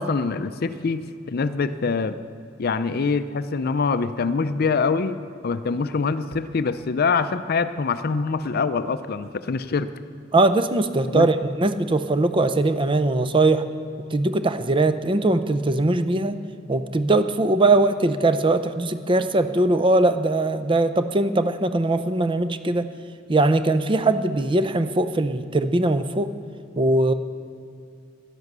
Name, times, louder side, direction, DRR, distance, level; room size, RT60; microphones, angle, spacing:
voice 1, 0.0-2.2 2.6-5.2 5.4-9.9 11.1-11.3, left 4 dB, 50° left, 12 dB, 0.5 m, -24 dB
voice 2, 10.3-13.6 14.1-16.4 16.7-22.9 23.3-26.3 26.8-27.1, right 2 dB, 25° right, 11 dB, 0.5 m, -21 dB
11.0 x 11.0 x 6.7 m, 2.5 s
head